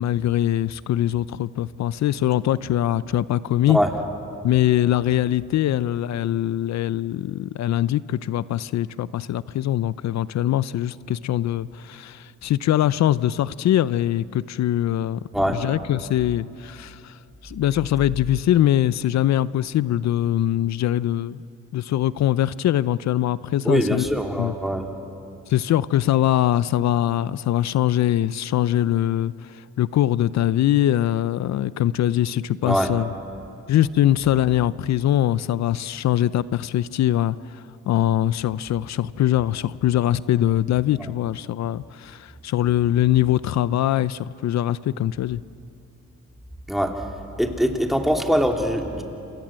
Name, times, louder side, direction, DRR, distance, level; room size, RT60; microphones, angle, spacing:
voice 1, 0.0-3.8 4.4-15.2 15.5-17.2 17.4-21.4 21.7-24.1 24.4-24.5 25.5-33.1 33.7-45.4, left 12 dB, 65° left, 17 dB, 0.6 m, -22 dB
voice 2, 23.6-24.8 32.6-32.9 41.0-41.1 46.7-46.9 47.4-49.0, equal, ahead, 2 dB, 3.1 m, -22 dB
28.0 x 27.0 x 7.6 m, 2.6 s
cardioid pair, 90°, 30 cm